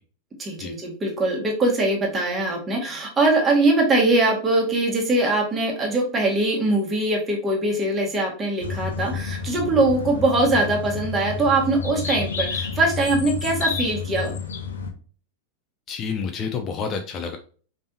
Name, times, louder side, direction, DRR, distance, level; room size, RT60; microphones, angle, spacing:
voice 1, 0.4-14.3, right 2 dB, 20° right, -1 dB, 1.8 m, -22 dB
sound 1, 8.6-14.9, left 5 dB, 65° left, 0.8 m, -30 dB
voice 2, 15.9-17.4, left 5 dB, 30° left, 6 dB, 0.5 m, -29 dB
5.2 x 3.4 x 2.7 m, 0.41 s
figure-of-eight pair, 90°, 0 cm